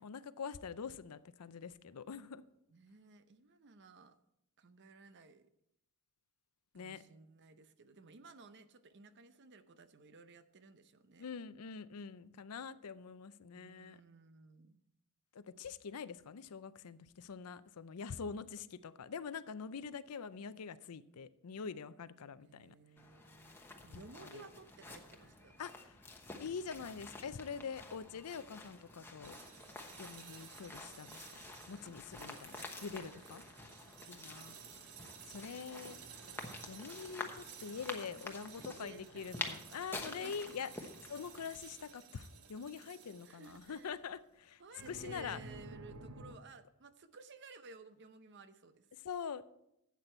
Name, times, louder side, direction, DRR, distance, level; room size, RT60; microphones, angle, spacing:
voice 1, 0.0-2.4 6.7-7.0 11.2-14.0 15.3-22.7 23.9-24.5 25.6-26.0 26.4-29.4 30.0-31.2 31.7-33.4 34.1-34.6 35.3-36.0 36.7-40.7 41.1-45.4 49.0-49.4, left 6 dB, 90° left, 0.5 m, -45 dB
voice 2, 2.7-4.2 4.6-5.5 6.7-11.3 13.5-14.8 22.4-25.5 31.8-31.9 32.9-33.8 38.2-38.4 38.8-40.5 43.2-44.0 44.6-48.9, right 4 dB, 50° right, 0.7 m, -57 dB
sound 1, 23.0-41.5, left 2 dB, 10° left, 1.0 m, -49 dB
sound 2, 29.2-44.0 44.8-46.4, right 5 dB, 85° right, 1.2 m, -54 dB
12.0 x 8.4 x 4.4 m
head